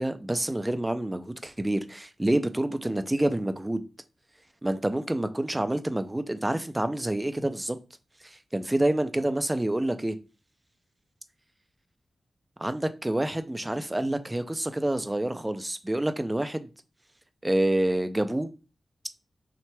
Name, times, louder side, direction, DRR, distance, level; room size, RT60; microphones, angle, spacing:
voice 1, 0.0-3.8 4.6-7.8 8.2-10.2 12.6-16.7 17.4-18.5, right 1 dB, 15° right, 0.4 m, -27 dB
5.7 x 3.1 x 2.2 m
wide cardioid pair, 105°, 0 cm